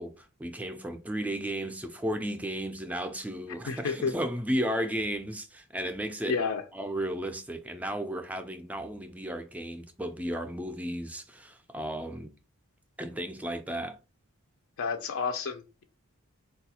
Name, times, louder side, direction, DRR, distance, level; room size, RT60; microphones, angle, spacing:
voice 1, 0.0-6.4 6.7-12.3 13.0-14.0, right 1 dB, 5° right, 0.3 m, -34 dB
voice 2, 3.7-4.1 6.3-6.6 14.8-15.8, left 5 dB, 65° left, 0.4 m, -30 dB
3.9 x 2.3 x 2.8 m
head